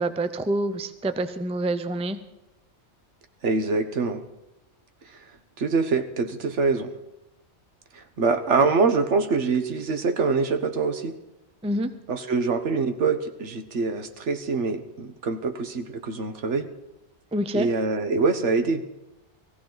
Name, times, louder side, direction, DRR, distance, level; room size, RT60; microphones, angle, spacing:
voice 1, 0.0-2.2 11.6-11.9 17.3-17.7, right 1 dB, 10° right, 11 dB, 0.4 m, -27 dB
voice 2, 3.4-4.2 5.6-6.9 7.9-11.2 12.1-16.7 17.5-18.8, right 4 dB, 80° right, 9 dB, 1.4 m, -24 dB
19.0 x 15.5 x 3.9 m, 0.95 s
omnidirectional pair, 1.2 m